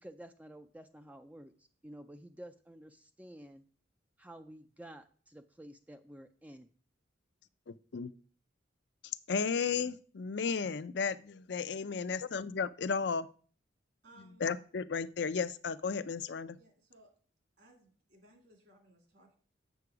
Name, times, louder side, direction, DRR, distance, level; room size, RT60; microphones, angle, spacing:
voice 1, 0.0-3.6 4.2-6.7, right 1 dB, 10° right, 7 dB, 0.3 m, -51 dB
voice 2, 7.7-8.1 9.3-13.3 14.4-16.6, left 5 dB, 60° left, 14 dB, 0.5 m, -34 dB
voice 3, 14.0-14.5 16.6-17.1 17.6-19.4, right 1 dB, 60° right, 3 dB, 2.3 m, -61 dB
8.1 x 6.9 x 4.8 m, 0.43 s
head